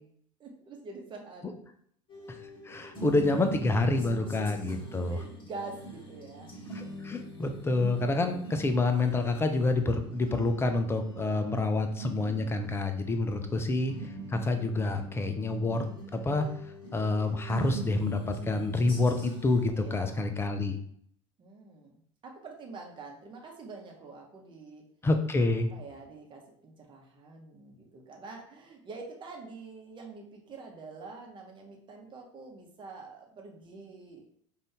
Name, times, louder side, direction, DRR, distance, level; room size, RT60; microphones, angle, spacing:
voice 1, 0.4-1.5 5.1-6.6 11.2-11.6 13.3-13.7 19.7-20.3 21.4-24.8 25.7-34.3, right 3 dB, 30° right, 1 dB, 1.1 m, -46 dB
sound 1, 2.1-19.6, right 2 dB, 30° left, 1.6 m, -43 dB
voice 2, 2.7-5.2 6.7-13.9 14.3-15.9 16.1-16.5 16.9-20.7 25.0-25.7, left 2 dB, 15° left, 6 dB, 0.6 m, -28 dB
5.3 x 2.6 x 3.3 m, 0.64 s
figure-of-eight pair, 75°, 17 cm